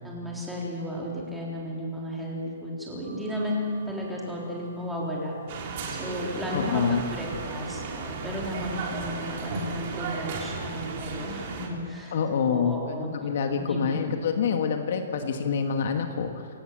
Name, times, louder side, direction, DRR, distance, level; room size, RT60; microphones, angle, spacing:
voice 1, 0.0-5.3 5.6-12.2 12.4-13.1 13.5-14.0, equal, 5° right, -4 dB, 3.7 m, -34 dB
sound 1, 3.0-10.3, right 3 dB, 55° right, 7.4 m, -52 dB
sound 2, 5.5-11.7, right 4 dB, 35° right, 3.5 m, -35 dB
voice 2, 6.5-7.1 12.1-16.5, left 6 dB, 50° left, 5 dB, 1.6 m, -27 dB
28.0 x 17.0 x 7.5 m, 2.3 s
hypercardioid pair, 170°, 0 cm